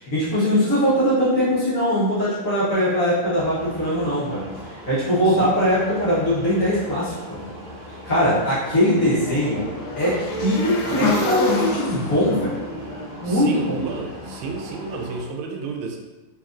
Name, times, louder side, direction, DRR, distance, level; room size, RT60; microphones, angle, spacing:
voice 1, 0.0-7.5 8.1-9.7 10.0-12.6 13.2-13.8, equal, 50° left, -10 dB, 1.2 m, -21 dB
sound 1, 3.3-15.2, equal, 35° right, 0.7 m, -39 dB
voice 2, 5.3-5.6 13.2-16.0, right 4 dB, 90° right, 2 dB, 1.5 m, -31 dB
Motorcycle / Engine, 8.1-14.2, left 3 dB, 75° left, 1.3 m, -28 dB
4.1 x 3.1 x 2.5 m, 1.2 s
omnidirectional pair, 2.3 m